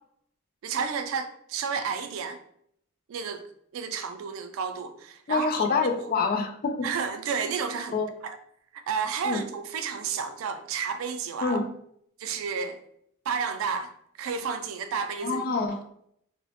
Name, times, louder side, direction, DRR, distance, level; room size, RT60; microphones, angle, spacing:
voice 1, 0.6-2.4 3.1-3.4 3.7-5.7 6.0-6.1 6.8-8.0 8.2-8.4 8.7-11.6 12.2-12.8 13.3-13.9 14.2-15.4, right 6 dB, 85° right, 0.3 m, -31 dB
voice 2, 5.3-6.9 7.9-8.1 9.2-9.4 11.4-11.6 15.2-15.8, left 4 dB, 45° left, 0.3 m, -26 dB
2.9 x 2.0 x 2.7 m
head